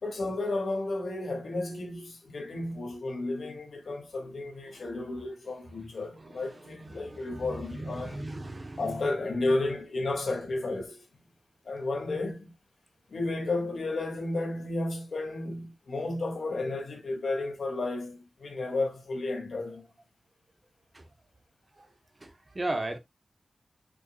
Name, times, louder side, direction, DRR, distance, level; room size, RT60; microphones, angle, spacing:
voice 1, 0.0-8.2 8.8-11.0 11.6-12.5 13.1-19.8, left 2 dB, 75° left, 2.5 m, -32 dB
voice 2, 4.7-5.2 6.2-9.1 20.9-21.0 21.8-21.9 22.2-23.0, right 2 dB, 30° right, 1.2 m, -38 dB
6.7 x 5.9 x 2.5 m
wide cardioid pair, 130°, 0 cm